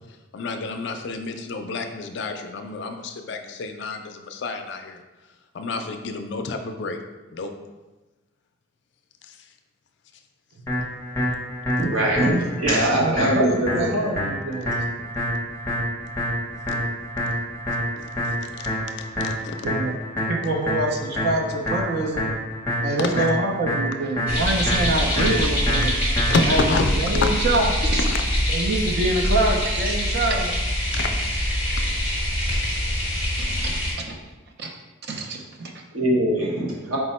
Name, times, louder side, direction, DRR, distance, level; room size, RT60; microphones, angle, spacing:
voice 1, 0.3-5.0 5.5-7.0 7.3-7.5 9.2-9.5 16.7-16.8 18.0-18.7 19.2-19.7 23.0-23.3 25.2-25.3 26.3-27.3 28.0-28.2 30.9-31.1, left 3 dB, 55° left, 6 dB, 0.3 m, -29 dB
sound 1, 10.7-26.7, equal, 10° left, 0.7 m, -28 dB
voice 2, 11.8-13.9 35.9-37.0, right 1 dB, 80° right, -3 dB, 1.0 m, -22 dB
voice 3, 13.0-14.8 19.2-19.3 19.6-20.0 20.3-22.4 22.8-25.9 26.5-26.7 27.0-28.1 28.5-30.6 33.4-34.2 34.6-34.7 35.1-35.8, right 2 dB, 50° right, 2 dB, 0.5 m, -26 dB
sound 2, 24.3-33.9, equal, 5° right, 1.1 m, -24 dB
4.5 x 2.1 x 4.1 m, 1.2 s
head